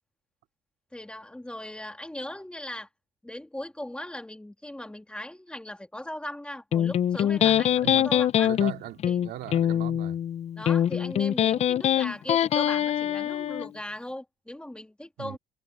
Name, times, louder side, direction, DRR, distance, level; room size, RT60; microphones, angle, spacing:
voice 1, 0.9-2.9 3.2-8.5 9.0-9.2 10.6-15.4, left 1 dB, 5° left, 1.9 m, -38 dB
Electric guitar, 6.7-13.7, left 10 dB, 40° left, 0.4 m, -24 dB
voice 2, 7.8-10.2 15.2-15.4, right 14 dB, 75° right, 2.3 m, -39 dB
cardioid pair, 130°, 17 cm